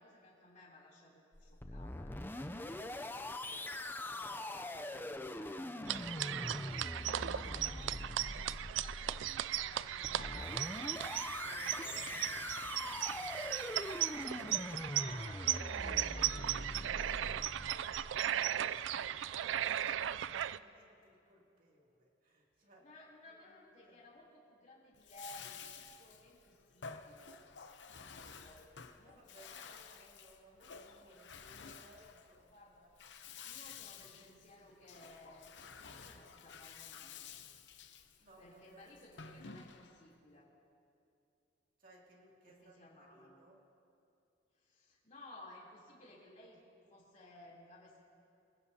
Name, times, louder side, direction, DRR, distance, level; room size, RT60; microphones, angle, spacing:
voice 1, 0.0-2.2 6.4-17.2 22.8-27.4 27.9-28.6 28.9-29.5 32.5-32.8 33.4-37.2 38.4-40.5 42.5-43.4 44.6-46.6 46.9-48.0, left 1 dB, 40° left, -5 dB, 3.2 m, -58 dB
sound 1, 1.3-18.2, left 1 dB, 10° left, 0.5 m, -43 dB
voice 2, 2.3-6.2 17.5-22.9 23.3-24.1 29.0-33.0 38.2-39.0 41.8-43.6, right 1 dB, 50° right, -2 dB, 2.6 m, -62 dB
sound 2, 5.9-20.6, right 11 dB, 85° right, 0.4 m, -37 dB
Bathtub (filling or washing), 24.9-40.1, left 6 dB, 65° left, 0.8 m, -52 dB
25.0 x 16.0 x 2.8 m, 2.5 s
head